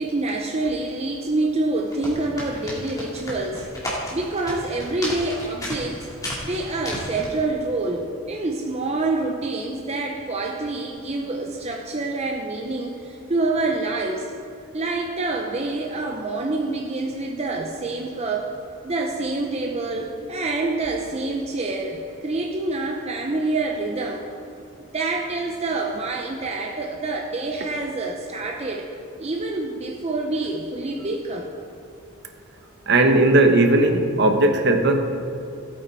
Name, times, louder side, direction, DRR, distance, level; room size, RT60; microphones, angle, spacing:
voice 1, 0.0-6.1 6.5-14.3 14.7-18.5 18.8-24.3 24.9-28.9 29.2-31.5, right 2 dB, 30° right, 0 dB, 0.7 m, -27 dB
sound 1, 1.8-7.4, equal, 15° left, 2.6 m, -33 dB
voice 2, 32.9-35.2, right 2 dB, 50° right, 5 dB, 1.0 m, -17 dB
15.5 x 8.8 x 4.1 m, 2.6 s
head